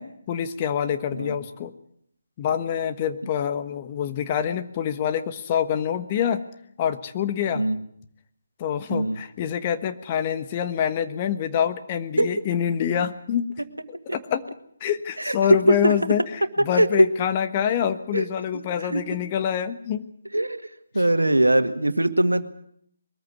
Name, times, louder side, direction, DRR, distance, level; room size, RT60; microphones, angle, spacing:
voice 1, 0.0-1.7 2.4-6.4 6.8-7.6 8.6-13.5 13.9-14.4 14.8-20.0, left 9 dB, 30° left, 9 dB, 1.4 m, -26 dB
voice 2, 18.5-19.0 20.3-20.6 20.9-22.4, right 1 dB, 90° right, 9 dB, 1.9 m, -21 dB
22.5 x 14.5 x 9.6 m, 0.67 s
figure-of-eight pair, 150°, 0 cm